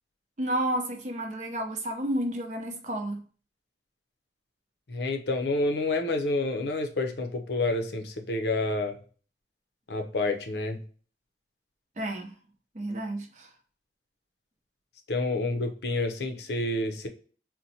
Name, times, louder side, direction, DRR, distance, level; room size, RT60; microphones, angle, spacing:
voice 1, 0.4-3.2 12.0-12.3 12.7-13.5, right 1 dB, 40° right, 0.7 m, -31 dB
voice 2, 4.9-9.0 9.9-10.8 15.1-17.1, left 2 dB, 65° left, 0.5 m, -28 dB
4.0 x 2.1 x 2.7 m
head